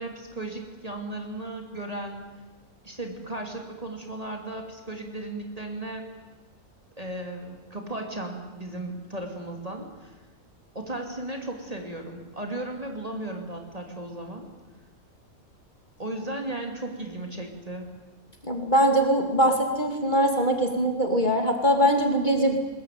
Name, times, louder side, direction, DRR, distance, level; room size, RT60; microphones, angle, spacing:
voice 1, 0.0-2.3 2.8-6.1 7.0-10.1 10.7-14.5 16.0-17.9, right 2 dB, 25° right, 3 dB, 2.9 m, -35 dB
voice 2, 18.4-22.6, equal, 30° left, 3 dB, 2.6 m, -22 dB
21.0 x 20.5 x 9.3 m, 1.3 s
omnidirectional pair, 1.5 m